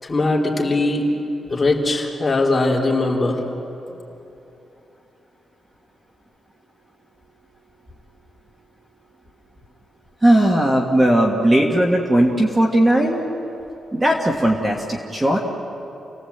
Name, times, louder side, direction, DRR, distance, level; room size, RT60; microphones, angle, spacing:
voice 1, 0.0-1.1 1.5-3.4, left 2 dB, 20° left, -3 dB, 3.2 m, -20 dB
voice 2, 10.2-13.2 13.9-15.4, right 1 dB, 15° right, 0 dB, 1.6 m, -17 dB
29.5 x 18.5 x 8.1 m, 3.0 s
wide cardioid pair, 170°, 0 cm